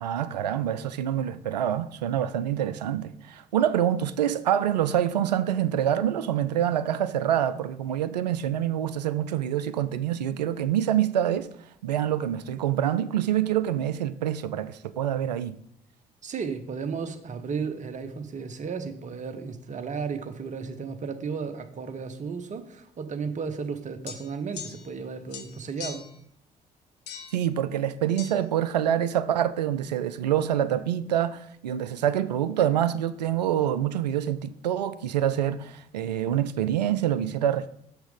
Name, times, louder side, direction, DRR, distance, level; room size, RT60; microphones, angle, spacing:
voice 1, 0.0-11.5 11.8-15.6 27.3-37.7, right 10 dB, 80° right, 0.4 m, -26 dB
voice 2, 16.2-26.1, right 5 dB, 35° right, 1.0 m, -34 dB
sound 1, 24.1-25.0 25.3-26.2 27.1-27.4 28.2-28.3, left 8 dB, 55° left, 1.0 m, -41 dB
6.3 x 6.2 x 5.0 m
figure-of-eight pair, 45°, 21 cm